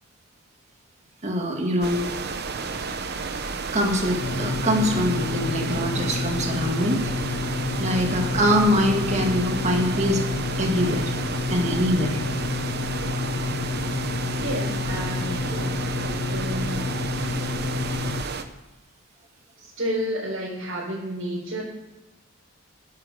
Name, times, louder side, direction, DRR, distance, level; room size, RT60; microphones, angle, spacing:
voice 1, 1.2-2.0 3.6-7.0 7.8-10.2 10.5-11.1 11.5-12.2, equal, 35° right, 2 dB, 1.8 m, -23 dB
sound 1, 1.8-18.4, right 4 dB, 55° right, 0.8 m, -32 dB
sound 2, 4.2-18.2, left 4 dB, 40° left, 0.5 m, -29 dB
voice 2, 8.0-8.4 14.4-16.9 19.8-21.6, equal, 70° right, -9 dB, 4.5 m, -31 dB
9.9 x 7.5 x 6.7 m, 1.1 s
head